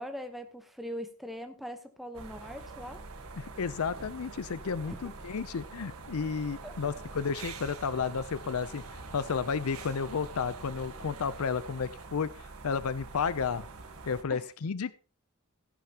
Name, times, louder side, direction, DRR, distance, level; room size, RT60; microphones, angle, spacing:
voice 1, 0.0-3.0 4.9-5.1 6.6-6.7 14.3-14.4, equal, ahead, 5 dB, 0.9 m, -41 dB
sound 1, 2.1-14.2, right 3 dB, 85° right, 1.4 m, -45 dB
voice 2, 3.4-12.3 12.6-13.7 14.1-14.9, left 5 dB, 90° left, 16 dB, 0.5 m, -32 dB
15.0 x 10.5 x 2.9 m, 0.36 s
head